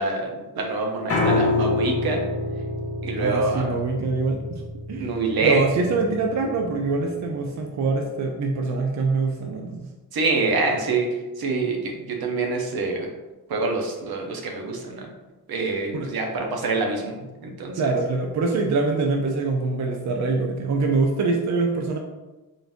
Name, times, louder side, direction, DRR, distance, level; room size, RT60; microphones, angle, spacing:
voice 1, 0.0-2.2 3.0-3.8 4.9-5.6 10.1-13.1 13.5-15.1 15.5-17.9, right 3 dB, 75° right, 2 dB, 0.8 m, -26 dB
Piano, 1.1-7.3, left 2 dB, 40° left, 0.8 m, -27 dB
voice 2, 3.2-4.6 4.9-5.1 5.4-9.9 15.9-16.1 17.8-22.0, right 3 dB, 50° right, 2 dB, 0.5 m, -24 dB
3.8 x 2.6 x 3.5 m, 1.1 s
wide cardioid pair, 135°, 37 cm